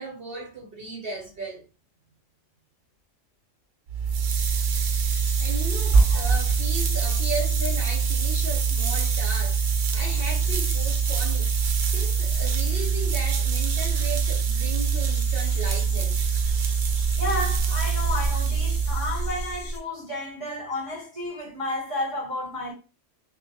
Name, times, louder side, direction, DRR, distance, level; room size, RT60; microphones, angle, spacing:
voice 1, 0.0-1.6 5.4-11.5 11.9-16.2, right 2 dB, 55° right, 1.0 m, -36 dB
sound 1, 3.9-19.7, right 6 dB, 80° right, 0.9 m, -24 dB
sound 2, 4.3-19.8, left 1 dB, 50° left, 0.6 m, -37 dB
voice 2, 5.9-6.2 17.2-22.7, right 1 dB, 25° left, 1.9 m, -28 dB
3.0 x 2.5 x 2.8 m
omnidirectional pair, 1.3 m